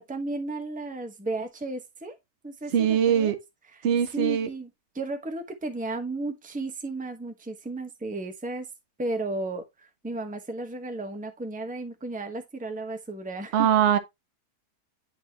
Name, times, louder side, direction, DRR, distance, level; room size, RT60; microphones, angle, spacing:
voice 1, 0.0-2.2 2.4-3.4 4.1-4.7 4.9-8.7 9.0-13.7, right 2 dB, 5° right, 0.9 m, -34 dB
voice 2, 2.7-3.3 3.8-4.5 13.5-14.0, right 9 dB, 50° right, 1.0 m, -22 dB
10.0 x 4.2 x 2.9 m
omnidirectional pair, 1.7 m